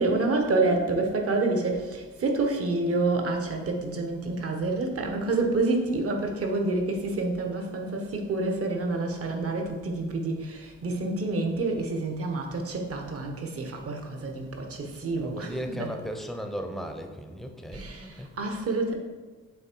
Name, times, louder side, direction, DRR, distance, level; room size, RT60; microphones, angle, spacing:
voice 1, 0.0-15.9 17.7-18.9, right 3 dB, 50° right, 3 dB, 1.1 m, -28 dB
voice 2, 15.2-18.3, equal, ahead, 4 dB, 0.7 m, -36 dB
6.9 x 3.3 x 4.6 m, 1.3 s
cardioid pair, 90°, 30 cm